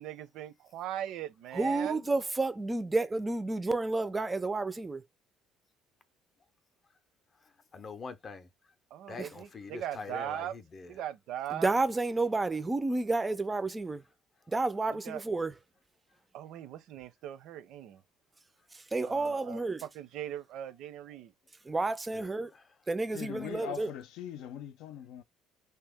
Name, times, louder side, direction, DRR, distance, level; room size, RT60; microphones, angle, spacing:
voice 1, 0.0-2.0 8.9-10.5 10.9-11.7 14.9-15.2 16.3-18.0 19.0-21.3, right 11 dB, 65° right, 0.6 m, -40 dB
voice 2, 1.5-5.0 9.2-9.3 11.5-14.0 14.5-15.5 18.7-19.8 21.6-22.5 22.9-23.9, right 3 dB, 15° right, 0.4 m, -31 dB
voice 3, 7.7-8.5 9.1-10.9 22.5-22.6, left 4 dB, 30° left, 0.6 m, -43 dB
voice 4, 23.1-25.2, left 10 dB, 80° left, 0.5 m, -41 dB
3.4 x 2.8 x 3.5 m
cardioid pair, 145°, 0 cm